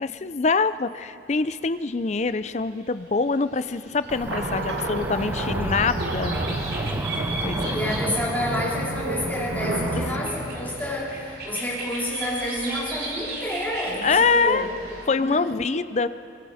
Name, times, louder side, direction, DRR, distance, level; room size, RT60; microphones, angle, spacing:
voice 1, 0.0-6.4 7.4-7.8 14.0-14.7 15.1-16.1, left 4 dB, 40° left, 13 dB, 0.5 m, -24 dB
sound 1, 2.0-2.3 2.6-15.0, right 2 dB, 60° right, 3.9 m, -38 dB
Cricket / Motor vehicle (road), 4.1-10.3, right 1 dB, 10° right, 0.5 m, -34 dB
sound 2, 4.3-11.7, right 1 dB, 90° right, 1.5 m, -30 dB
voice 2, 7.7-14.7 15.2-15.6, left 1 dB, 10° left, -6 dB, 4.1 m, -29 dB
23.0 x 22.5 x 5.0 m, 2.5 s
head